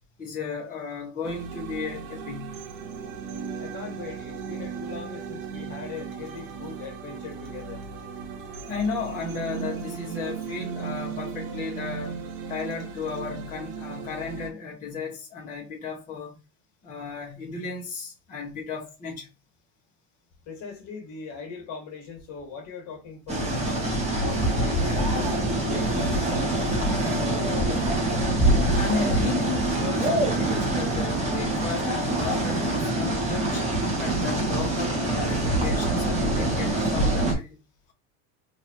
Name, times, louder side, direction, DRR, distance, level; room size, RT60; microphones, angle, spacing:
voice 1, 0.2-2.6 8.7-16.4 16.8-19.3 28.7-33.6 34.0-37.6, left 5 dB, 15° left, 1.3 m, -34 dB
sound 1, 1.2-14.5, right 6 dB, 80° right, 1.3 m, -36 dB
voice 2, 3.6-7.8 20.4-25.3 25.6-27.9, left 5 dB, 45° left, 1.7 m, -40 dB
sound 2, 23.3-37.3, right 1 dB, 15° right, 1.2 m, -24 dB
3.9 x 2.8 x 2.9 m
supercardioid pair, 135°, 45 cm